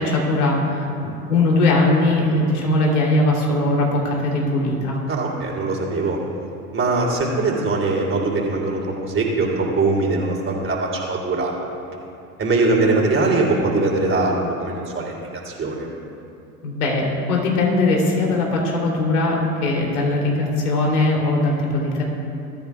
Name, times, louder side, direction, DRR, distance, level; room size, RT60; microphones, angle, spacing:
voice 1, 0.0-5.0 16.6-22.0, left 2 dB, 75° left, -2 dB, 3.4 m, -20 dB
voice 2, 5.1-6.2 6.7-11.5 12.4-15.9, right 3 dB, 25° right, -2 dB, 3.6 m, -21 dB
22.0 x 13.5 x 2.4 m, 2.6 s
hypercardioid pair, 80°, 45 cm